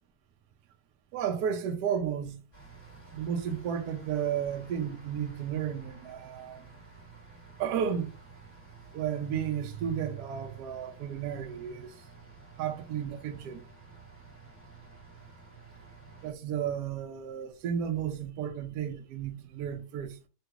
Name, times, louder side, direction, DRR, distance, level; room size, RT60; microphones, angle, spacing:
voice 1, 1.1-2.4 3.1-6.7 7.6-8.1 8.9-11.9 12.6-13.6 16.2-20.2, right 8 dB, 80° right, 0.8 m, -33 dB
sound 1, 2.5-16.3, right 4 dB, 15° left, 1.5 m, -52 dB
3.5 x 2.9 x 2.4 m
omnidirectional pair, 2.3 m